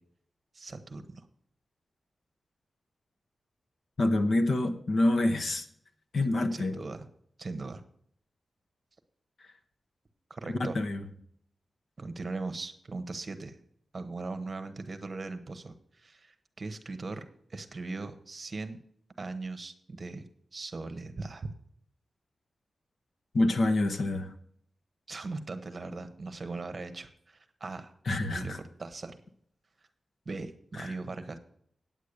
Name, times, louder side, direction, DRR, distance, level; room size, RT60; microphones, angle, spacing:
voice 1, 0.5-1.2 6.5-7.1 7.4-7.8 10.3-10.8 12.0-13.6 13.9-18.8 19.2-20.2 20.5-21.5 25.1-27.9 28.3-29.2 30.3-31.4, right 3 dB, 35° right, 0.9 m, -39 dB
voice 2, 4.0-5.6 6.1-6.8 10.7-11.0 23.3-24.3 28.1-28.6 30.8-30.9, left 2 dB, 55° left, 1.1 m, -26 dB
9.1 x 8.4 x 6.6 m
wide cardioid pair, 155°, 0 cm